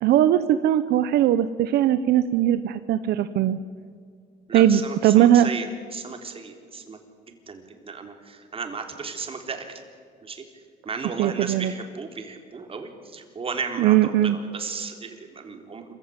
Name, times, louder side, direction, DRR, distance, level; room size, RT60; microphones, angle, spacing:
voice 1, 0.0-3.6 4.5-5.5 11.2-11.7 13.8-14.4, right 12 dB, 75° right, 12 dB, 0.9 m, -19 dB
voice 2, 4.5-7.0 7.3-9.7 10.2-10.4 10.9-15.9, right 5 dB, 35° right, 5 dB, 3.7 m, -35 dB
26.5 x 15.5 x 9.8 m, 2.1 s
cardioid pair, 110°, 17 cm